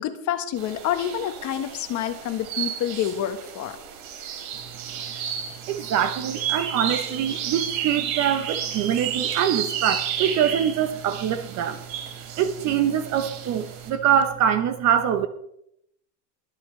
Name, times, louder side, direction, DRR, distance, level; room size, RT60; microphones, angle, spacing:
voice 1, 0.0-3.8, left 10 dB, 35° left, 1.4 m, -28 dB
sound 1, 0.6-13.9, right 9 dB, 70° right, 4.0 m, -32 dB
voice 2, 5.7-11.8 12.4-15.3, right 9 dB, 35° right, 0.9 m, -24 dB
23.0 x 8.5 x 3.3 m
supercardioid pair, 140°, 50 cm